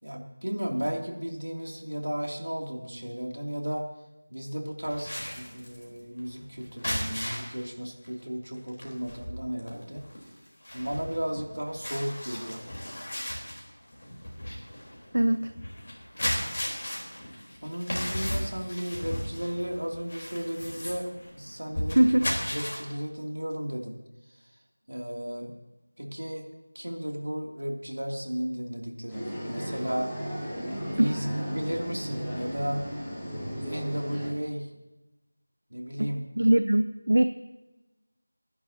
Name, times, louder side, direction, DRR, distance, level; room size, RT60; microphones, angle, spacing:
voice 1, 0.0-3.9 4.3-10.0 10.7-12.6 17.6-21.1 21.3-24.0 24.4-24.5 24.9-25.5 26.0-26.4 26.7-30.1 30.9-32.9 33.3-34.7 35.7-36.2, equal, 75° right, 1 dB, 2.7 m, -34 dB
sound 1, 4.8-7.6 8.1-8.2 8.5-22.8, left 1 dB, 45° left, 3.9 m, -36 dB
voice 2, 15.1-15.5 22.0-22.3 31.0-31.2 36.0-36.1 36.4-37.2, right 1 dB, 60° right, 10 dB, 0.6 m, -21 dB
sound 2, 29.1-34.3, equal, 5° left, 1.8 m, -35 dB
28.0 x 11.0 x 2.8 m, 1.1 s
figure-of-eight pair, 175°, 0 cm